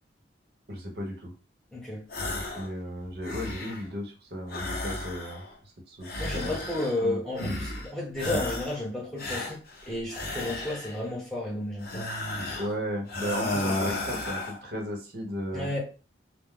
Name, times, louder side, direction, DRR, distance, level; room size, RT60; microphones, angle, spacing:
voice 1, 0.7-1.3 2.5-5.4 5.9-7.2 12.5-15.7, equal, 55° right, 0.8 m, -35 dB
voice 2, 1.7-2.0 6.2-9.6 9.9-12.0 15.5-15.8, left 1 dB, ahead, 0.9 m, -32 dB
sound 1, 2.1-2.7 3.0-3.9 4.5-5.5 6.0-7.0 7.4-7.9 8.2-8.8 9.2-11.0 11.8-12.7 13.1-14.6, left 2 dB, 50° left, 0.6 m, -33 dB
2.2 x 2.1 x 3.6 m
head